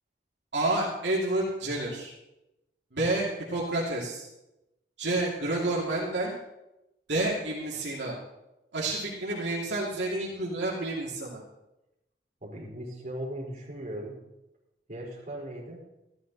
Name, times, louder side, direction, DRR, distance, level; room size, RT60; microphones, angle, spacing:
voice 1, 0.5-2.1 2.9-4.3 5.0-6.3 7.1-8.1 8.7-11.4, right 2 dB, 80° right, -4 dB, 2.5 m, -29 dB
voice 2, 12.4-14.2 14.9-15.8, right 1 dB, 45° right, -4 dB, 4.3 m, -38 dB
14.0 x 12.5 x 4.1 m, 0.93 s
head